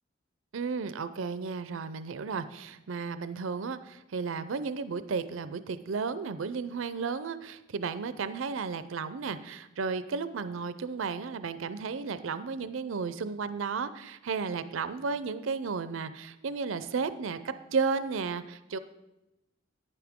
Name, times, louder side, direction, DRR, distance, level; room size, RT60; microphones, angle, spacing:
voice 1, 0.5-18.8, right 5 dB, 90° right, 13 dB, 0.5 m, -33 dB
11.0 x 9.7 x 3.6 m, 0.96 s
head